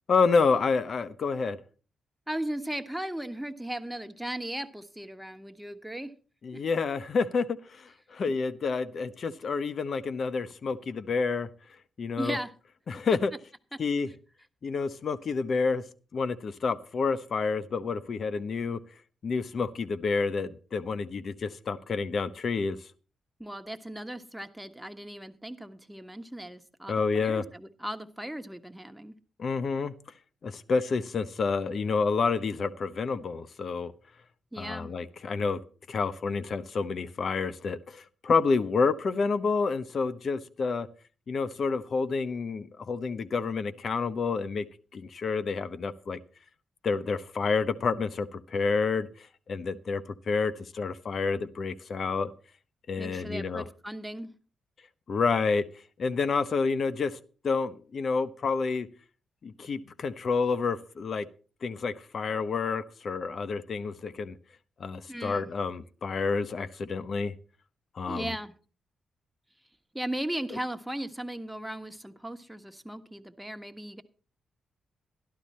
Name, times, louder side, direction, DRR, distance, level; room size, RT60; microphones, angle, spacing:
voice 1, 0.1-1.6 6.4-11.5 12.0-12.4 12.9-13.3 13.8-14.1 14.6-15.8 16.1-18.8 19.2-22.8 26.9-27.4 29.4-29.9 30.4-33.9 34.6-35.6 35.9-40.9 41.3-44.7 44.9-46.2 46.8-52.3 52.9-53.6 55.1-55.6 56.0-57.2 57.4-58.9 59.4-61.3 61.6-64.4 64.8-67.3 68.0-68.4, left 4 dB, 60° left, 13 dB, 0.9 m, -29 dB
voice 2, 2.3-6.1 6.5-6.6 8.3-8.4 12.2-12.5 23.4-29.1 34.5-34.9 53.0-54.3 65.1-65.5 68.1-68.5 69.9-74.0, right 1 dB, 5° right, 9 dB, 1.3 m, -37 dB
12.5 x 11.5 x 4.3 m, 0.38 s
supercardioid pair, 50°, 0 cm